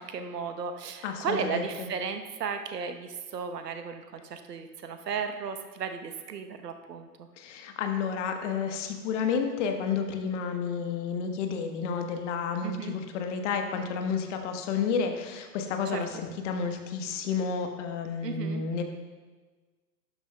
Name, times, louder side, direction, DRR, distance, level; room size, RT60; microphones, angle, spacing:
voice 1, 0.0-7.1 12.6-12.9 15.9-16.0 18.2-18.6, right 6 dB, 70° right, 7 dB, 1.1 m, -35 dB
voice 2, 1.0-1.9 7.4-18.8, left 6 dB, 45° left, 5 dB, 1.3 m, -31 dB
12.0 x 10.5 x 2.3 m, 1.3 s
figure-of-eight pair, 110°, 50 cm